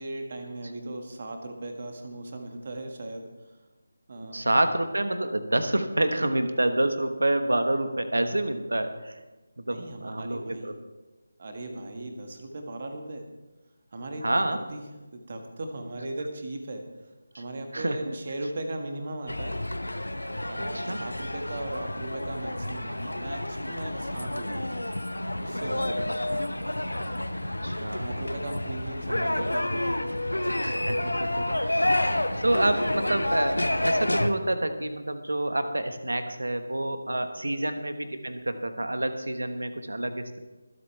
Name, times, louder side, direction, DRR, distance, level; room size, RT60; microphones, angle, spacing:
voice 1, 0.0-3.3 4.1-4.4 9.7-10.7 11.4-13.2 13.9-14.2 14.5-14.8 15.1-16.8 17.4-19.7 20.5-24.8 25.4-26.1 28.0-30.1 37.4-37.7, right 2 dB, 40° right, 4 dB, 1.7 m, -38 dB
voice 2, 4.3-9.2 9.6-10.7 12.0-12.1 14.2-14.6 17.3-17.4 17.7-18.1 20.7-21.0 26.3-26.4 27.6-28.1 30.6-40.4, right 1 dB, 70° right, 8 dB, 1.3 m, -28 dB
sound 1, 19.3-34.3, left 1 dB, 75° left, 0.9 m, -29 dB
24.5 x 8.3 x 3.4 m, 1.1 s
figure-of-eight pair, 160°, 0 cm